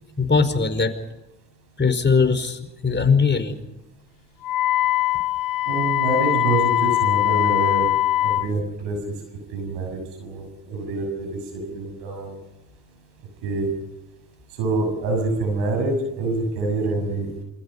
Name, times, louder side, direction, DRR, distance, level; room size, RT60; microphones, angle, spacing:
voice 1, 0.2-0.9 1.8-3.5, left 5 dB, 25° left, 8 dB, 5.0 m, -20 dB
Wind instrument woodwind instrument, 4.4-8.5, left 14 dB, 55° left, 1.1 m, -21 dB
voice 2, 5.7-7.9 8.2-9.1 9.5-12.4 13.4-13.7 14.6-17.3, right 3 dB, 80° right, 5 dB, 7.0 m, -26 dB
28.0 x 27.5 x 5.5 m, 0.94 s
hypercardioid pair, 50°, 41 cm